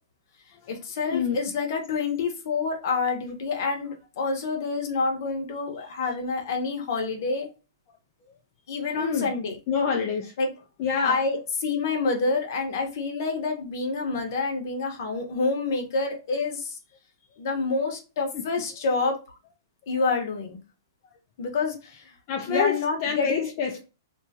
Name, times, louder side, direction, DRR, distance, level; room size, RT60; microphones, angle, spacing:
voice 1, 0.7-7.5 8.7-9.6 10.4-10.5 11.0-16.8 17.4-19.4 19.9-20.6 21.4-22.1 22.5-23.5, left 4 dB, 50° left, 0.9 m, -28 dB
voice 2, 8.9-9.3 9.7-10.3 10.8-11.2 18.3-18.4 22.3-23.8, left 6 dB, 35° left, 0.5 m, -26 dB
2.7 x 2.3 x 2.7 m
hypercardioid pair, 160°, 2 cm